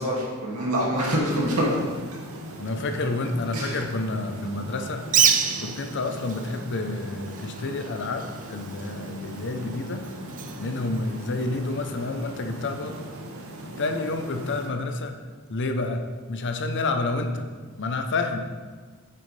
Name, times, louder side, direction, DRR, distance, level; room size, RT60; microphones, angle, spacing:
voice 1, 0.0-1.8 3.5-3.8, equal, 85° right, -4 dB, 2.3 m, -25 dB
sound 1, 1.4-14.7, right 1 dB, 70° right, 1.1 m, -39 dB
voice 2, 2.6-5.0 5.6-10.0 10.5-13.1 13.8-15.1 15.5-16.0 16.3-17.5 17.8-18.4, left 3 dB, 55° left, 6 dB, 0.7 m, -29 dB
Bird, 5.0-11.7, right 7 dB, 35° right, 0.5 m, -29 dB
8.7 x 6.8 x 3.3 m, 1.4 s
head